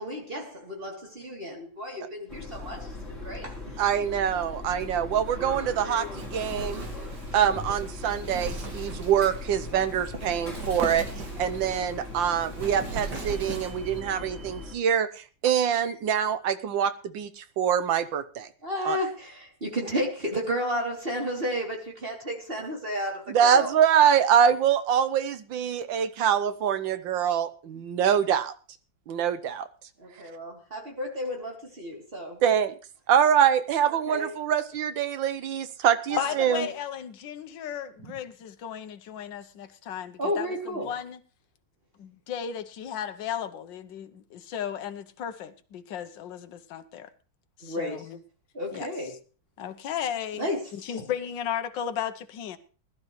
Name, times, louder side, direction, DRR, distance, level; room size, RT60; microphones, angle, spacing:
voice 1, 0.0-3.6 18.6-23.7 30.0-32.4 34.1-34.3 36.1-36.3 40.2-40.9 47.6-48.0 48.5-49.1 50.3-50.6 51.0-51.1, equal, 30° right, 3.2 m, -32 dB
sound 1, 2.3-14.8, left 2 dB, 40° left, 3.5 m, -39 dB
voice 2, 3.8-6.8 7.3-11.0 11.4-18.5 18.8-19.0 23.3-28.5 29.1-29.7 32.4-32.7 33.1-36.6, right 8 dB, 85° right, 1.7 m, -24 dB
Wind, 5.3-14.0, right 2 dB, 65° right, 3.2 m, -39 dB
voice 3, 36.2-41.2 42.0-47.1 47.6-48.2 48.7-48.9 49.6-52.6, left 9 dB, 80° left, 1.6 m, -35 dB
20.0 x 12.0 x 3.1 m
omnidirectional pair, 2.0 m